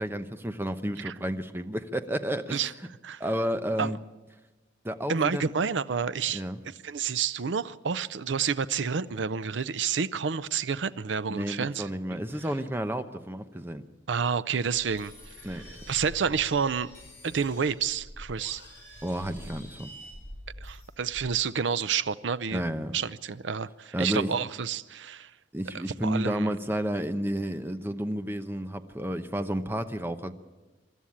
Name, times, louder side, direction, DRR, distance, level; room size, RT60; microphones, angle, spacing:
voice 1, 0.0-2.7 3.2-4.0 4.8-5.5 6.3-6.6 11.3-13.8 15.4-15.6 19.0-19.9 22.5-23.0 23.9-24.3 25.5-30.3, equal, 10° right, 9 dB, 0.8 m, -31 dB
voice 2, 5.1-11.9 14.1-15.1 15.5-16.9 17.2-18.6 20.6-22.6 22.9-25.3 26.0-26.6, right 6 dB, 70° right, 15 dB, 0.6 m, -29 dB
sound 1, 14.6-21.4, equal, 15° left, 6.0 m, -46 dB
23.5 x 13.0 x 8.6 m, 1.2 s
head